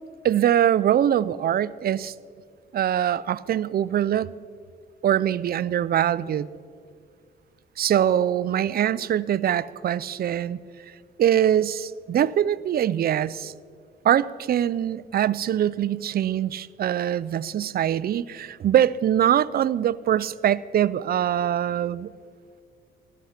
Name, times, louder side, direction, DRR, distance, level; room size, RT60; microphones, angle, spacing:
voice 1, 0.2-2.1 2.7-4.3 5.0-6.5 7.8-10.6 11.2-13.5 14.0-22.1, right 10 dB, 50° right, 18 dB, 0.5 m, -23 dB
15.0 x 12.5 x 5.8 m, 2.1 s
cardioid pair, 90°, 20 cm